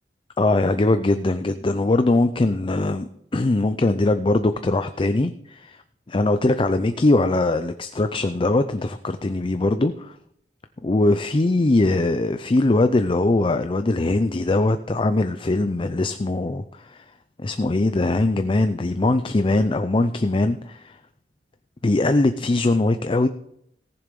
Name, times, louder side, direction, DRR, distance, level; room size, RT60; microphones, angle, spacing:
voice 1, 0.4-5.8 6.1-10.1 10.8-17.0 17.4-21.0 21.8-23.3, left 2 dB, 30° left, 10 dB, 0.5 m, -21 dB
18.0 x 7.0 x 5.3 m, 0.75 s
head